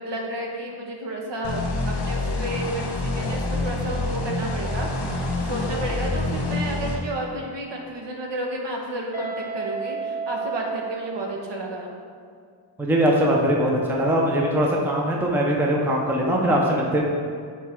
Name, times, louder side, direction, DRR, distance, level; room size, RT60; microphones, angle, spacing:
voice 1, 0.0-11.9, right 1 dB, 55° right, 0 dB, 1.2 m, -31 dB
sound 1, 1.4-7.0, left 2 dB, 50° left, 1.2 m, -27 dB
Guitar, 9.1-12.0, right 5 dB, 40° right, 1.9 m, -32 dB
voice 2, 12.8-17.0, right 1 dB, 5° right, -1 dB, 0.6 m, -21 dB
8.0 x 4.6 x 4.4 m, 2.1 s
wide cardioid pair, 160°, 49 cm